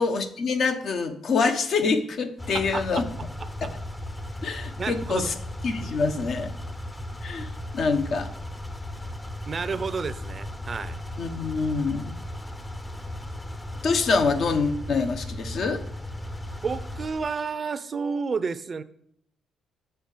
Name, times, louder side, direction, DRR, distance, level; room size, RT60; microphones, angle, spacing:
voice 1, 0.0-3.1 3.6-3.7 4.4-5.3 5.6-6.5 7.2-8.3 11.2-12.2 13.8-15.8, left 4 dB, 60° left, 7 dB, 1.1 m, -25 dB
sound 1, 2.4-17.5, left 1 dB, 15° left, 0.7 m, -36 dB
voice 2, 2.5-3.0 3.4-3.7 4.8-5.3 9.5-11.0 16.6-18.8, right 5 dB, 40° right, 14 dB, 0.6 m, -31 dB
6.9 x 5.6 x 6.7 m, 0.67 s
cardioid pair, 90°, 0 cm